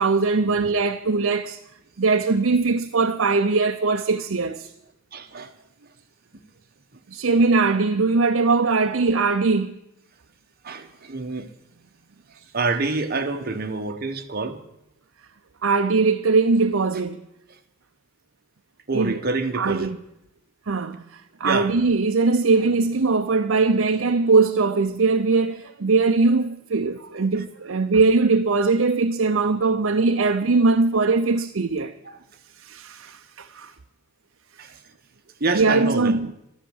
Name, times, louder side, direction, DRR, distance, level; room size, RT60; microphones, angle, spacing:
voice 1, 0.0-1.6 2.0-4.7 7.1-9.7 15.6-17.2 18.9-19.2 19.5-20.0 20.7-21.0 21.4-31.9 32.6-33.7 35.5-36.3, right 4 dB, 65° right, 0.6 m, -21 dB
voice 2, 5.1-5.5 10.6-11.5 12.3-14.6 18.9-19.9 21.4-21.7 27.3-27.4 32.0-32.2 34.6-34.8 35.4-36.2, right 3 dB, 45° right, 1.1 m, -27 dB
13.0 x 11.0 x 7.2 m
head